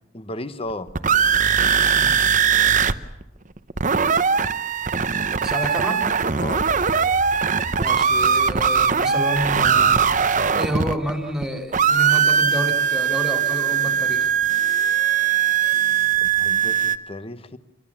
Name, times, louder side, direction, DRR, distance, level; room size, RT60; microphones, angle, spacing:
voice 1, 0.1-1.0 6.4-6.7 16.2-17.6, left 1 dB, 30° left, 12 dB, 1.1 m, -34 dB
sound 1, 0.7-2.9 3.2-3.3 3.6-11.4 11.7-17.0, right 7 dB, 40° right, 0.8 m, -20 dB
voice 2, 5.4-6.0 7.8-10.0 10.6-14.3, equal, ahead, 4 dB, 2.6 m, -29 dB
sound 2, 6.3-10.6, left 1 dB, 75° left, 3.3 m, -41 dB
27.0 x 22.5 x 7.3 m, 0.94 s
head